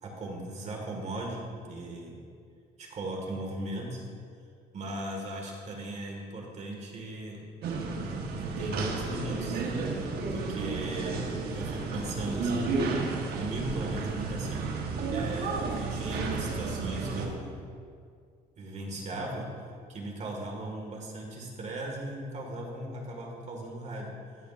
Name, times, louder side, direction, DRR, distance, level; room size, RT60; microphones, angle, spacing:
voice 1, 0.0-2.1 2.8-4.1 4.7-7.4 8.4-13.0 13.4-14.6 15.1-17.7 18.6-19.5 19.9-24.1, right 1 dB, 45° right, 0 dB, 1.8 m, -37 dB
sound 1, 7.6-17.3, right 4 dB, 70° right, 1.2 m, -32 dB
13.5 x 7.2 x 2.5 m, 2.2 s
cardioid pair, 110°, 17 cm